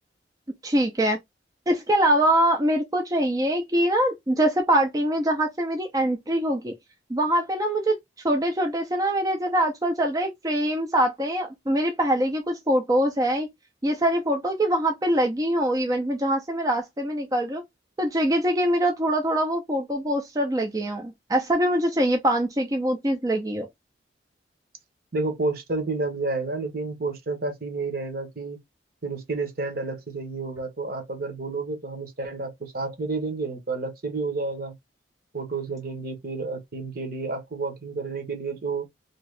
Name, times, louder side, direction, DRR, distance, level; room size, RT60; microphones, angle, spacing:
voice 1, 0.6-1.2 1.7-6.7 7.1-8.0 8.2-13.5 13.8-17.6 18.0-23.7, right 1 dB, 20° right, 0.5 m, -23 dB
voice 2, 25.1-28.6 29.0-34.7 35.3-38.9, right 3 dB, 55° right, 1.0 m, -30 dB
2.8 x 2.7 x 3.2 m
head